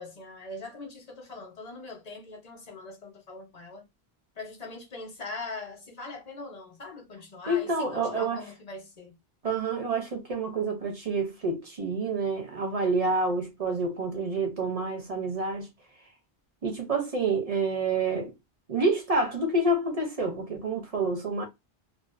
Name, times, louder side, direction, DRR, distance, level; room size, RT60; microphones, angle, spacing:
voice 1, 0.0-3.8 4.4-9.1, left 3 dB, 40° left, 0.8 m, -41 dB
voice 2, 7.5-8.4 9.4-15.7 16.6-18.3 18.7-21.4, right 3 dB, 45° right, 0.5 m, -28 dB
2.4 x 2.2 x 2.4 m
omnidirectional pair, 1.1 m